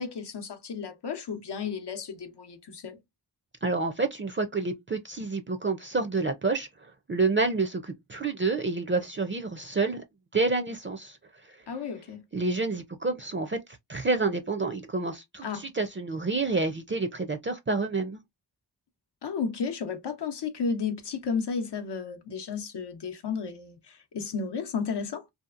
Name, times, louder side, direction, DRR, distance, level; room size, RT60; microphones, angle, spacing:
voice 1, 0.0-3.0 11.7-12.2 15.4-15.6 19.2-25.2, left 5 dB, 80° left, 0.7 m, -33 dB
voice 2, 3.6-10.0 10.3-11.2 12.3-13.6 13.9-18.2, right 3 dB, 30° right, 0.4 m, -28 dB
2.8 x 2.4 x 2.4 m
wide cardioid pair, 40°, 40 cm